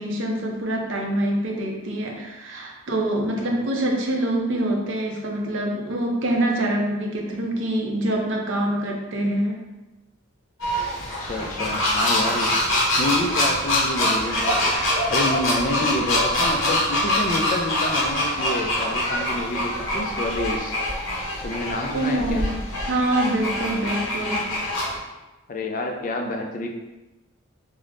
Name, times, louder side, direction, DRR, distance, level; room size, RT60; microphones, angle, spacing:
voice 1, 0.0-9.6 21.9-22.6 22.9-24.4, right 1 dB, 65° right, 0 dB, 0.6 m, -25 dB
sound 1, 10.6-25.0, left 1 dB, 70° left, 0.7 m, -24 dB
voice 2, 11.2-12.5 13.0-14.8 15.1-20.8 21.4-22.5 25.5-26.7, left 2 dB, 40° left, 2 dB, 0.3 m, -28 dB
4.8 x 2.1 x 2.5 m, 1.1 s
head